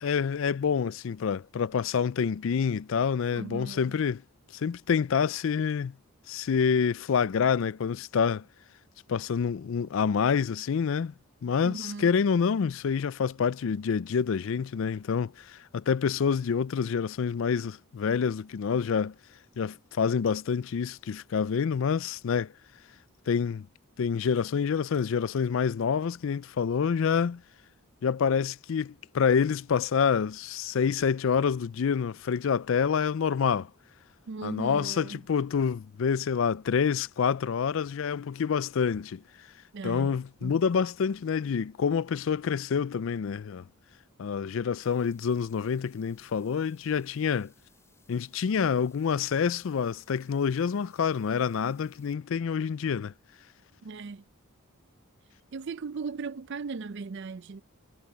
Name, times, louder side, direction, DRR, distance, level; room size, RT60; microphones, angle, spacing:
voice 1, 0.0-4.2 4.5-5.9 6.3-8.4 9.1-11.1 11.4-19.1 19.6-22.5 23.3-23.7 24.0-27.4 28.0-33.7 34.4-39.2 39.8-43.6 44.2-47.5 48.1-53.1, left 6 dB, 60° left, 0.4 m, -27 dB
voice 2, 3.3-4.0 11.6-12.1 34.3-35.2 39.7-40.6 53.8-54.2 55.5-57.6, right 4 dB, 55° right, 0.5 m, -38 dB
sound 1, 44.8-52.1, left 4 dB, 10° left, 5.3 m, -66 dB
head